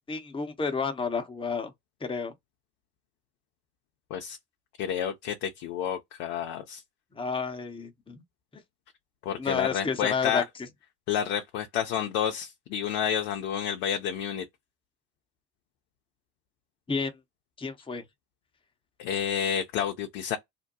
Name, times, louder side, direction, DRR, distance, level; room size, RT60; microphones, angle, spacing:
voice 1, 0.1-1.7 2.0-2.3 7.1-8.2 9.4-10.4 16.9-17.2 17.6-18.0, left 5 dB, 10° left, 0.8 m, -31 dB
voice 2, 4.8-6.8 9.3-10.4 11.1-14.4 19.0-20.4, left 9 dB, 55° left, 0.7 m, -30 dB
2.7 x 2.1 x 2.7 m
figure-of-eight pair, 55°, 49 cm